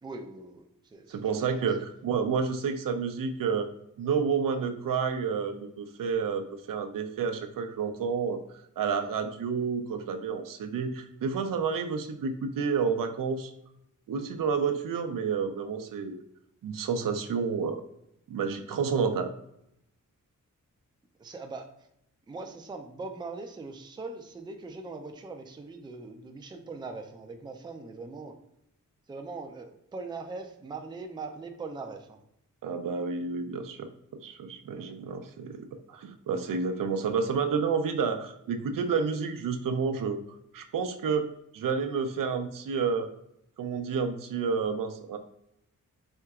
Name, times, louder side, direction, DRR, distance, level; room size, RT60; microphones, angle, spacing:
voice 1, 0.0-1.7 21.2-21.7 22.3-28.3 29.1-32.2, right 3 dB, 15° right, 4 dB, 0.4 m, -41 dB
voice 2, 1.1-3.7 4.0-8.4 8.8-13.5 14.1-16.2 16.6-17.8 18.3-19.3 32.6-33.9 34.2-40.2 40.5-43.1 43.6-45.2, right 5 dB, 80° right, 7 dB, 0.6 m, -30 dB
4.4 x 3.7 x 2.3 m, 0.78 s
wide cardioid pair, 160°, 32 cm